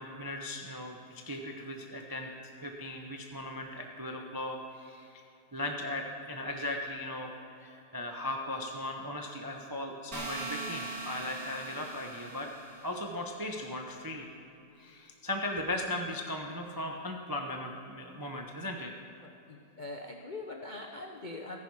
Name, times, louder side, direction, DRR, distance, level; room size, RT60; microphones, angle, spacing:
voice 1, 0.0-2.3 2.6-5.1 5.5-7.3 7.6-12.5 12.8-14.3 14.8-18.9, left 1 dB, 30° right, 2 dB, 0.4 m, -37 dB
sound 1, 10.1-13.0, right 2 dB, 50° right, 2.7 m, -40 dB
voice 2, 19.2-21.6, left 2 dB, 55° left, 2 dB, 0.5 m, -42 dB
14.5 x 10.5 x 4.8 m, 2.8 s
omnidirectional pair, 2.0 m